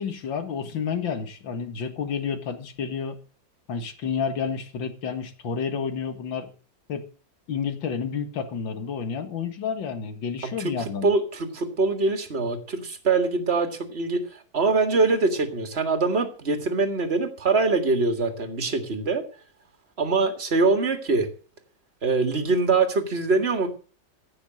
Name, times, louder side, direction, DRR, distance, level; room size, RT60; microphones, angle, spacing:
voice 1, 0.0-3.2 3.7-6.5 6.9-7.0 7.5-11.1, left 6 dB, 85° left, 8 dB, 2.3 m, -30 dB
voice 2, 10.6-19.2 20.0-21.3 22.0-23.7, right 3 dB, 35° right, 7 dB, 2.1 m, -23 dB
15.5 x 6.2 x 7.6 m, 0.40 s
omnidirectional pair, 2.0 m